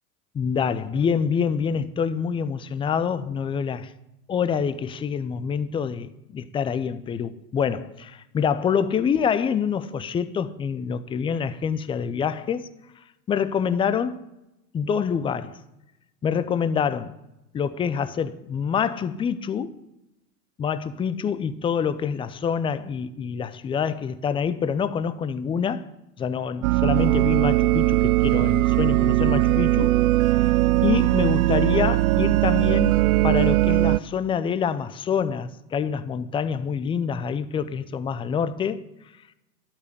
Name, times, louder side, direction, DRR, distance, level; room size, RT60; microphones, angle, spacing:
voice 1, 0.3-3.9 4.3-12.7 13.3-14.3 14.7-15.6 16.2-17.1 17.5-19.8 20.6-25.9 26.2-30.0 30.2-32.9 33.2-38.8, left 7 dB, 10° left, 0.4 m, -26 dB
sound 1, 26.6-34.0, right 17 dB, 60° right, 0.5 m, -20 dB
12.0 x 8.8 x 9.7 m
hypercardioid pair, 105°, 48 cm